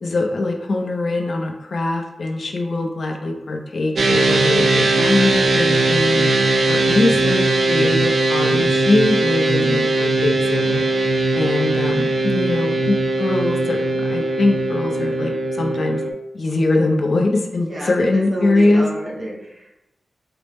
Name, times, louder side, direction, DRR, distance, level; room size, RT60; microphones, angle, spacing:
voice 1, 0.0-6.3 6.7-10.8 11.3-16.0 16.3-18.9, left 2 dB, 65° left, 2 dB, 0.5 m, -22 dB
sound 1, 4.0-16.1, right 2 dB, 70° right, 0.4 m, -19 dB
voice 2, 17.6-19.8, right 1 dB, 40° right, -4 dB, 1.0 m, -30 dB
4.1 x 2.0 x 3.4 m, 0.90 s
wide cardioid pair, 80°, 0 cm